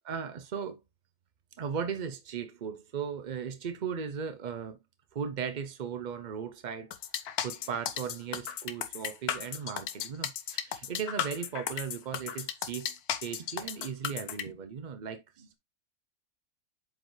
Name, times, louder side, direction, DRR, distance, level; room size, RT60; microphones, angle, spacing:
voice 1, 0.0-0.8 1.6-4.8 5.1-6.9 7.4-15.5, right 7 dB, 55° right, 0.5 m, -37 dB
sound 1, 6.9-14.4, left 9 dB, 85° left, 1.3 m, -35 dB
7.9 x 5.0 x 3.1 m
omnidirectional pair, 1.6 m